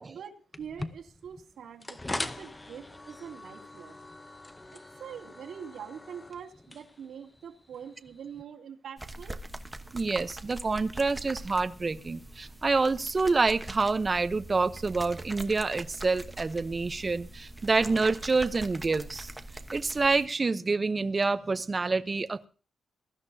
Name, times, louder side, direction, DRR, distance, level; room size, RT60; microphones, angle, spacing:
voice 1, 0.1-4.0 4.7-9.4, right 7 dB, 80° right, 0 dB, 2.7 m, -44 dB
sound 1, 0.5-8.4, left 2 dB, 15° left, 0.8 m, -42 dB
sound 2, 9.0-20.3, right 1 dB, 10° right, 1.1 m, -43 dB
voice 2, 9.9-19.3 19.7-22.5, right 3 dB, 30° right, 11 dB, 0.8 m, -27 dB
22.0 x 13.0 x 2.8 m, 0.36 s
wide cardioid pair, 135°, 0 cm